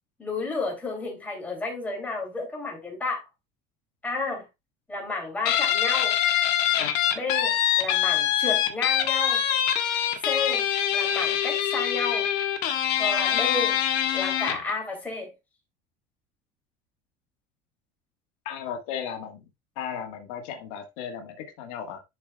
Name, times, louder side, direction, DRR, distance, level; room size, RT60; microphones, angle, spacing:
voice 1, 0.2-3.2 4.0-4.5 4.9-6.2 7.1-9.4 10.2-10.6 10.9-12.3 13.0-13.8 14.1-15.3, left 3 dB, 10° left, 2.8 m, -31 dB
Guitar, 5.5-14.7, left 10 dB, 60° left, 1.5 m, -24 dB
voice 2, 18.5-19.4 19.8-22.0, left 8 dB, 80° left, 1.7 m, -35 dB
11.5 x 4.9 x 2.3 m
cardioid pair, 170°, 18 cm